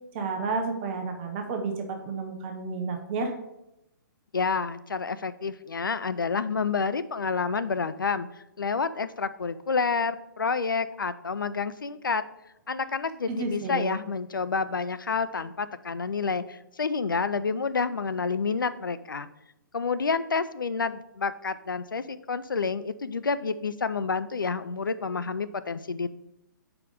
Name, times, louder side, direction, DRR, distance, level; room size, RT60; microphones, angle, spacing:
voice 1, 0.1-3.3 13.3-13.9, right 4 dB, 30° right, 4 dB, 0.7 m, -31 dB
voice 2, 4.3-8.3 8.6-12.2 12.7-19.3 19.7-26.1, left 5 dB, 75° left, 13 dB, 0.4 m, -29 dB
4.8 x 4.8 x 5.2 m, 0.87 s
figure-of-eight pair, 125°, 11 cm